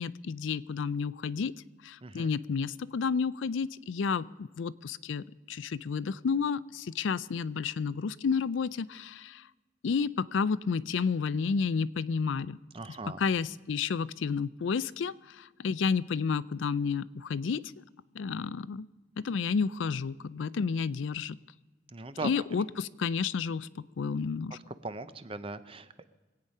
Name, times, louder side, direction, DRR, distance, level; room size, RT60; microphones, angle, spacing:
voice 1, 0.0-1.5 1.8-9.4 9.8-12.6 12.9-17.6 18.1-18.9 19.2-21.4 22.2-23.7 24.0-24.6, left 5 dB, 70° left, 17 dB, 0.4 m, -31 dB
voice 2, 12.7-13.2 21.9-22.3 24.8-26.0, right 3 dB, 30° right, 12 dB, 0.6 m, -39 dB
23.5 x 8.8 x 5.5 m, 1.2 s
head